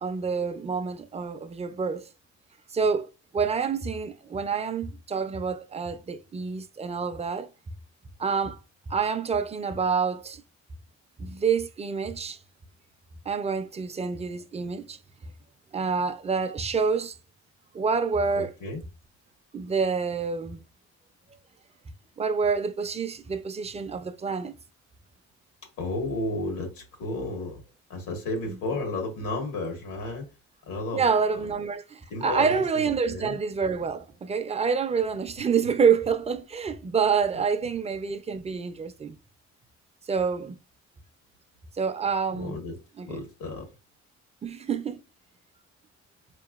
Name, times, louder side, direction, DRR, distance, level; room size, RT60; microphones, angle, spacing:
voice 1, 0.0-2.1 2.7-7.5 8.2-8.6 8.9-10.4 11.2-12.4 13.3-15.0 15.7-17.2 17.7-18.5 19.5-20.6 22.2-24.6 28.5-28.6 30.9-39.2 40.1-40.6 41.8-42.6 43.0-43.2 44.4-45.0, right 5 dB, 20° right, 0.4 m, -27 dB
voice 2, 18.3-18.8 25.8-27.6 27.9-30.2 30.7-31.1 32.1-33.4 35.6-35.7 42.3-42.7 43.1-43.7, left 2 dB, 90° left, 1.4 m, -32 dB
4.3 x 2.9 x 2.3 m
cardioid pair, 90°, 30 cm